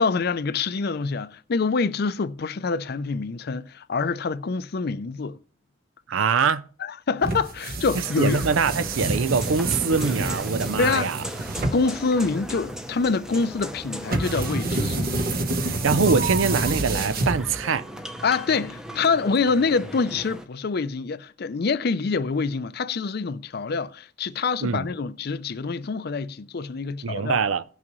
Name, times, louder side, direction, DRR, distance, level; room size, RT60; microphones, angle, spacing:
voice 1, 0.0-5.4 6.8-8.4 10.8-11.1 11.7-15.2 18.2-27.4, left 4 dB, 50° left, 0.5 m, -26 dB
voice 2, 6.1-6.7 8.2-11.2 15.7-17.8 24.6-24.9 27.0-27.6, right 5 dB, 85° right, 0.5 m, -23 dB
sound 1, 7.2-17.8, right 2 dB, 50° right, 0.9 m, -28 dB
sound 2, 8.0-20.4, equal, 5° right, 0.7 m, -38 dB
17.5 x 6.1 x 3.1 m
head